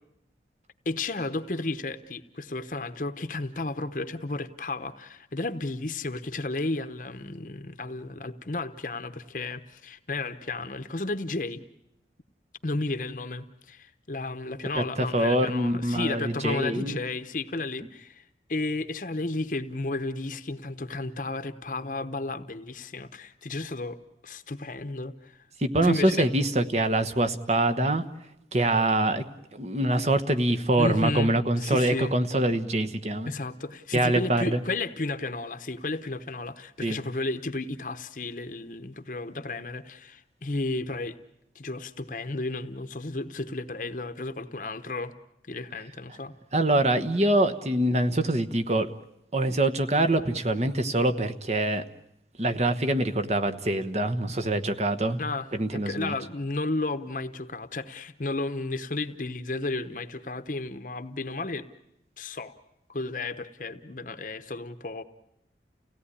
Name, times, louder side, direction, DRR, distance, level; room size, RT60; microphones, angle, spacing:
voice 1, 0.8-11.7 12.6-24.0 24.2-25.4 25.8-26.3 30.8-32.1 33.3-41.2 41.5-45.1 45.5-46.3 55.2-61.7 62.2-62.5 62.9-65.0, left 2 dB, 45° left, 10 dB, 0.9 m, -33 dB
voice 2, 14.8-17.0 25.6-28.0 28.5-29.2 29.5-33.3 33.9-34.6 36.8-37.0 46.5-48.9 49.3-51.8 52.4-55.2 55.5-56.1, right 1 dB, 35° right, 8 dB, 1.2 m, -24 dB
30.0 x 17.0 x 9.9 m, 0.86 s
head